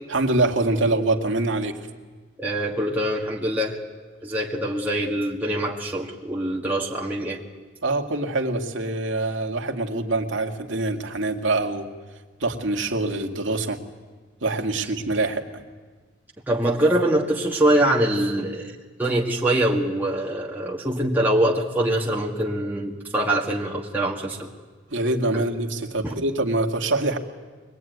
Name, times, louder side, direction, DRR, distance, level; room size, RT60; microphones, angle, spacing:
voice 1, 0.1-1.8 7.8-11.9 12.4-13.8 14.4-15.4 24.9-27.2, right 2 dB, 70° right, 3 dB, 2.2 m, -24 dB
voice 2, 2.4-3.8 4.2-7.4 16.5-24.5 25.3-25.4 26.0-26.1, right 1 dB, 10° right, -3 dB, 1.7 m, -24 dB
23.5 x 21.0 x 9.4 m, 1.4 s
head